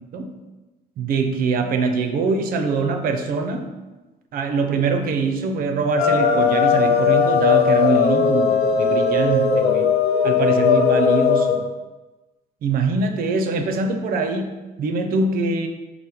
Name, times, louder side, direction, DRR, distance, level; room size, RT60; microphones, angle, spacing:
voice 1, 1.0-3.7 4.3-9.9 10.2-11.6 12.6-15.7, right 4 dB, 60° right, 7 dB, 0.5 m, -23 dB
sound 1, 6.0-11.6, left 6 dB, 70° left, 0.4 m, -18 dB
4.3 x 2.0 x 3.5 m, 1.1 s
cardioid pair, 110°, 17 cm